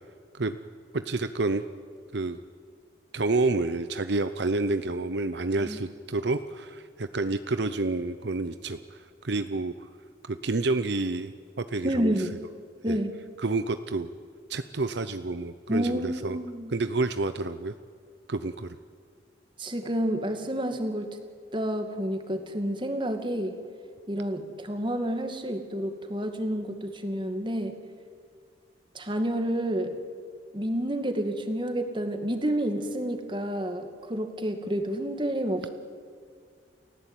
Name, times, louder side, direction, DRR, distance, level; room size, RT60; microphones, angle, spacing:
voice 1, 0.9-1.6 2.1-2.4 3.1-9.9 10.2-12.1 12.9-13.0 13.4-14.1 14.5-16.4 16.7-17.7 18.3-18.8, right 3 dB, 65° right, 11 dB, 0.7 m, -29 dB
voice 2, 11.8-12.4 12.8-13.1 15.7-16.7 19.6-21.1 21.5-23.6 24.1-27.7 28.9-30.0 30.5-35.7, right 1 dB, 25° right, 6 dB, 2.2 m, -29 dB
30.0 x 16.0 x 9.1 m, 2.1 s
head